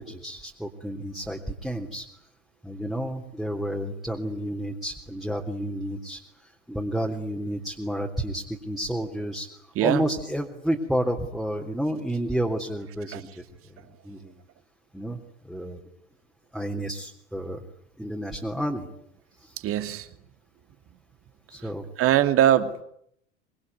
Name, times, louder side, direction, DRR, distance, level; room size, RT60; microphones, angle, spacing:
voice 1, 0.0-2.1 2.6-6.2 6.7-9.5 9.8-13.3 14.0-14.3 14.9-15.2 15.4-15.8 16.5-17.6 18.0-18.9 19.4-19.5 21.5-21.9, right 1 dB, ahead, 1 dB, 3.5 m, -30 dB
voice 2, 19.6-20.1 22.0-22.8, right 11 dB, 40° right, 9 dB, 2.7 m, -21 dB
24.5 x 24.5 x 9.6 m, 0.72 s
figure-of-eight pair, 80°, 36 cm